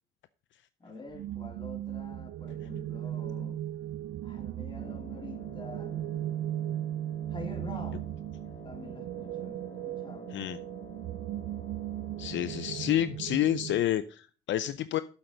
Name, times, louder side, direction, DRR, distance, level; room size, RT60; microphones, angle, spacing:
voice 1, 0.8-3.6 4.2-6.0 7.3-8.1 8.6-10.3, left 2 dB, 25° left, 2.9 m, -46 dB
sound 1, 1.1-13.8, right 12 dB, 75° right, 0.5 m, -37 dB
Wind instrument woodwind instrument, 4.7-13.3, left 2 dB, 50° left, 3.0 m, -50 dB
voice 2, 12.2-15.0, left 12 dB, 70° left, 0.5 m, -29 dB
8.3 x 7.7 x 5.2 m
cardioid pair, 90°, 20 cm